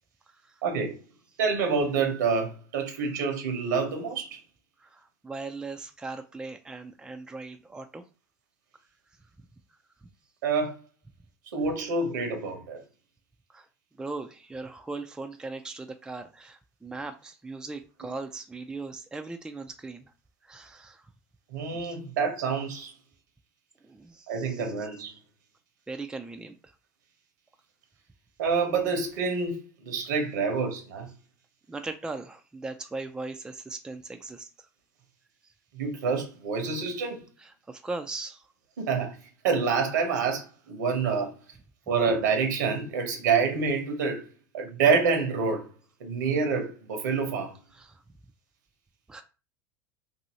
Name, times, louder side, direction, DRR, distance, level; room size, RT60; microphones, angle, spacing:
voice 1, 0.6-1.0 1.4-4.4 10.4-10.7 11.5-12.8 21.5-22.9 24.3-25.1 28.4-31.1 35.7-37.2 38.8-39.1 39.4-41.3 41.9-44.2 44.5-45.7 46.0-47.5, right 5 dB, 80° right, 0.9 m, -27 dB
voice 2, 4.8-8.0 13.5-13.7 13.9-20.1 20.4-21.0 21.8-22.0 23.8-24.7 25.9-26.7 31.7-34.7 37.4-38.5 47.7-48.0 49.1-49.2, right 3 dB, 10° right, 0.4 m, -39 dB
2.7 x 2.7 x 2.9 m
hypercardioid pair, 80°, 10 cm